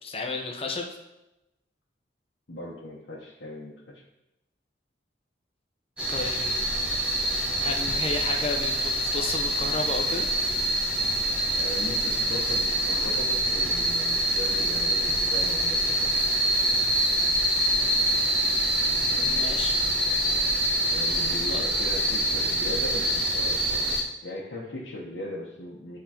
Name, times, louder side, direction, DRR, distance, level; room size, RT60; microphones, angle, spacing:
voice 1, 0.0-0.9 6.1-6.6 7.6-10.3 19.1-19.8 21.5-21.6, left 3 dB, 30° left, 2 dB, 0.8 m, -32 dB
voice 2, 2.5-4.0 11.5-16.5 19.1-19.4 20.9-26.0, left 1 dB, 80° left, -6 dB, 1.0 m, -38 dB
sound 1, 6.0-24.0, right 1 dB, 5° right, 1.2 m, -25 dB
10.5 x 3.7 x 2.9 m, 0.93 s
head